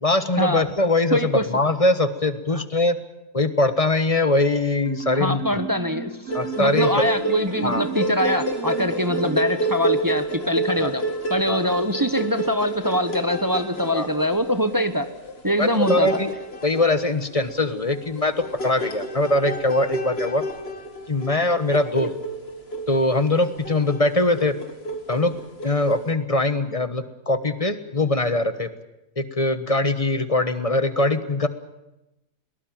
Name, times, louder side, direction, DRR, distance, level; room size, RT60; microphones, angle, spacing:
voice 1, 0.0-3.0 3.3-5.4 6.3-7.0 7.6-7.8 10.8-10.9 11.5-11.6 13.9-14.1 15.6-16.3 16.6-20.4 21.1-22.1 22.9-24.5 25.1-25.3 25.6-28.7 29.2-31.5, left 2 dB, 25° left, 12 dB, 1.3 m, -22 dB
voice 2, 1.1-1.5 2.5-2.6 5.1-6.1 6.6-11.0 11.3-15.1 15.4-16.1, equal, 15° right, 10 dB, 1.1 m, -23 dB
Marimba xylophone, 4.8-10.0, right 5 dB, 85° right, 3.1 m, -34 dB
sound 1, 6.3-26.1, right 1 dB, 45° left, 2.3 m, -29 dB
22.0 x 19.0 x 8.9 m, 0.92 s
omnidirectional pair, 1.5 m